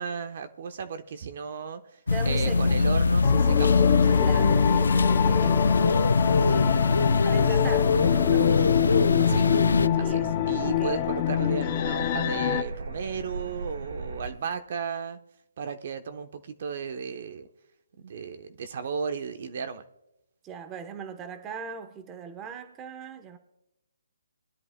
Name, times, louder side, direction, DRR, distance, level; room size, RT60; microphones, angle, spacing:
voice 1, 0.0-4.2 9.2-9.5 9.9-15.2 15.6-17.5 18.0-19.8, right 6 dB, 50° right, 8 dB, 0.9 m, -35 dB
sound 1, 2.1-9.9, left 4 dB, 85° left, 0.4 m, -22 dB
voice 2, 2.1-2.8 4.1-6.1 6.4-6.9 7.2-8.7 9.9-10.3 10.6-11.1 20.4-23.4, right 6 dB, 15° right, 8 dB, 0.9 m, -40 dB
sound 2, 2.4-14.3, right 2 dB, 80° right, 3.4 m, -37 dB
sound 3, 3.2-12.6, left 13 dB, 30° left, 0.5 m, -26 dB
22.0 x 10.5 x 2.2 m, 0.93 s
hypercardioid pair, 155°, 0 cm